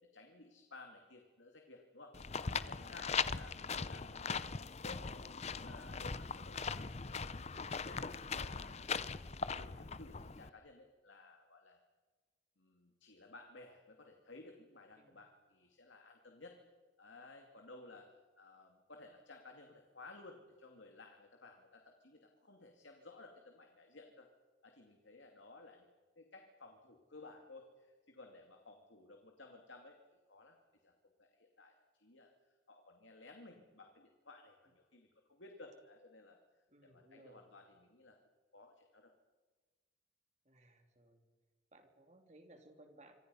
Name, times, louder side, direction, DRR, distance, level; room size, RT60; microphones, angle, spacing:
voice 1, 0.0-2.2 2.5-4.2 4.8-7.3 7.7-11.8 12.6-16.6 17.0-24.3 24.6-25.9 26.2-30.0 30.3-30.6 30.8-30.9 31.2-32.3 32.7-36.4 36.8-38.2 38.5-39.1, left 3 dB, 85° left, 3 dB, 2.4 m, -57 dB
sound 1, 2.1-10.5, left 5 dB, 35° left, 0.7 m, -40 dB
voice 2, 36.7-37.5 40.4-41.2 41.7-43.1, right 1 dB, 40° right, 4 dB, 3.4 m, -61 dB
26.0 x 26.0 x 5.6 m, 1.4 s
head